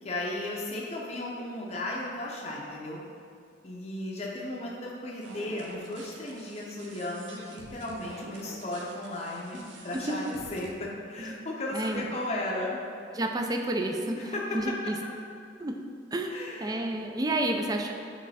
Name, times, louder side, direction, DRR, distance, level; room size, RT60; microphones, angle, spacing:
voice 1, 0.0-3.0 3.6-10.2 10.5-12.8 14.1-14.4 16.3-16.8, left 1 dB, 35° left, -4 dB, 0.6 m, -35 dB
sound 1, 5.2-10.7, right 3 dB, 75° right, 0.6 m, -48 dB
voice 2, 9.9-10.3 11.2-11.4 11.7-12.1 13.1-15.0 15.6-15.8 16.1-16.3 16.6-17.9, right 1 dB, 20° right, 3 dB, 0.4 m, -30 dB
8.8 x 3.2 x 4.1 m, 2.4 s
head